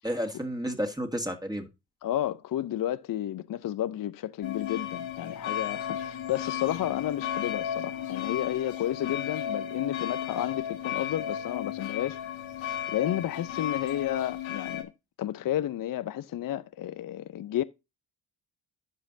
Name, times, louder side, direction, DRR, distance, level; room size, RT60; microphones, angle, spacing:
voice 1, 0.0-1.7, equal, 10° right, 1.8 m, -31 dB
voice 2, 2.0-12.2 12.9-14.9 15.2-17.6, left 12 dB, 45° left, 0.5 m, -31 dB
sound 1, 4.4-14.8, left 10 dB, 65° left, 1.4 m, -34 dB
13.5 x 5.1 x 2.6 m
supercardioid pair, 50°, 49 cm